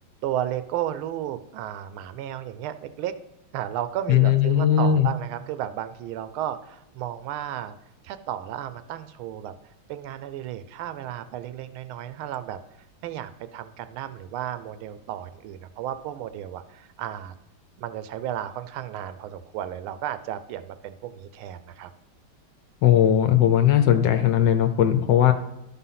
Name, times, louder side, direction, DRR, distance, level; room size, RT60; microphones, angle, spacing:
voice 1, 0.2-3.1 3.5-7.7 8.0-9.5 9.9-12.6 13.0-17.3 17.8-21.9, right 11 dB, 85° right, 12 dB, 1.4 m, -33 dB
voice 2, 4.1-5.1 22.8-25.3, left 10 dB, 70° left, 7 dB, 1.2 m, -18 dB
11.5 x 4.1 x 5.6 m, 0.88 s
omnidirectional pair, 2.3 m